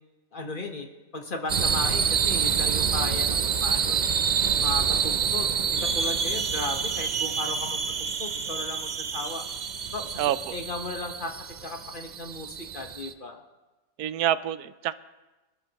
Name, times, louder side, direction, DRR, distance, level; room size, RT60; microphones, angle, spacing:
voice 1, 0.3-0.9 1.1-4.1 4.6-9.5 9.9-10.2 10.5-11.3 11.6-13.4, left 2 dB, 35° left, 3 dB, 1.2 m, -36 dB
sound 1, 1.5-13.1, right 6 dB, 70° right, 0.4 m, -27 dB
voice 2, 10.2-10.5 14.0-14.9, right 11 dB, 90° right, 15 dB, 1.1 m, -27 dB
23.5 x 12.5 x 2.9 m, 1.1 s
omnidirectional pair, 1.6 m